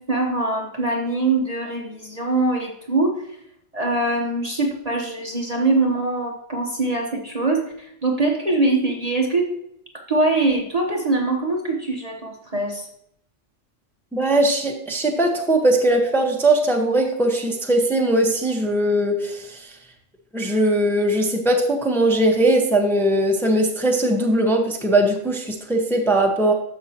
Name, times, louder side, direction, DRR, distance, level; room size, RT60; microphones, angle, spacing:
voice 1, 0.0-3.2 3.7-9.5 9.9-12.9, right 2 dB, 30° right, 0 dB, 1.1 m, -23 dB
voice 2, 14.1-19.7 20.3-26.5, right 1 dB, ahead, 1 dB, 1.0 m, -20 dB
14.0 x 5.6 x 2.9 m, 0.72 s
omnidirectional pair, 1.3 m